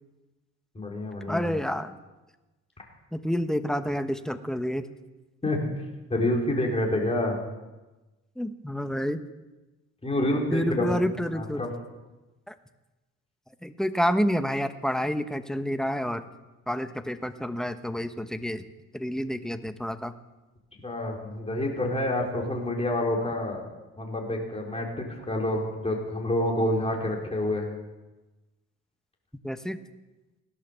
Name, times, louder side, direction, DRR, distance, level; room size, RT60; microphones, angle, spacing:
voice 1, 0.7-1.6 5.4-5.7 6.1-7.4 10.0-11.7 20.8-23.6 24.0-27.7, left 1 dB, 20° left, -1 dB, 4.3 m, -28 dB
voice 2, 1.3-1.9 3.1-4.8 8.4-9.2 10.5-11.6 12.5-12.6 13.6-16.2 16.7-18.6 18.9-20.1 29.4-29.8, equal, ahead, 9 dB, 1.1 m, -28 dB
17.0 x 11.5 x 7.0 m, 1.1 s
cardioid pair, 90°, 30 cm